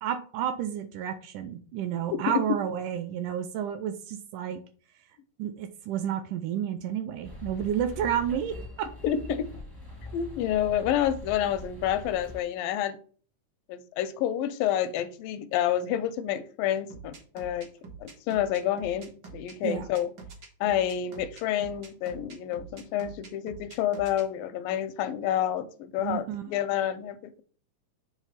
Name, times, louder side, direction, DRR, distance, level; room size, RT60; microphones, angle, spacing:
voice 1, 0.0-4.6 5.4-8.9 19.6-19.9 26.0-26.4, right 9 dB, 80° right, 2.0 m, -31 dB
sound 1, 7.2-12.4, left 2 dB, 15° right, 0.7 m, -42 dB
voice 2, 9.0-9.5 10.1-13.0 13.7-17.7 18.0-20.1 20.6-27.4, left 11 dB, 85° left, 2.3 m, -29 dB
sound 2, 16.9-24.2, right 4 dB, 65° right, 1.0 m, -45 dB
7.3 x 3.3 x 5.6 m
omnidirectional pair, 4.0 m